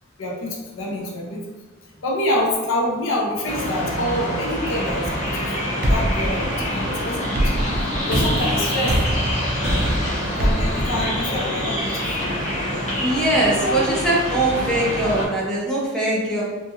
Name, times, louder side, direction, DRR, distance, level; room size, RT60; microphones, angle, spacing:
voice 1, 0.2-1.4 2.0-5.5 5.9-7.3 7.8-9.0 10.4-12.3, left 1 dB, 85° left, -1 dB, 0.5 m, -26 dB
sound 1, 3.4-15.2, equal, 35° left, 0.8 m, -26 dB
sound 2, 4.9-5.5 5.8-11.7, right 1 dB, 55° right, 0.4 m, -24 dB
voice 2, 13.0-16.4, right 1 dB, 5° left, -6 dB, 0.6 m, -21 dB
2.8 x 2.5 x 2.4 m, 1.2 s
head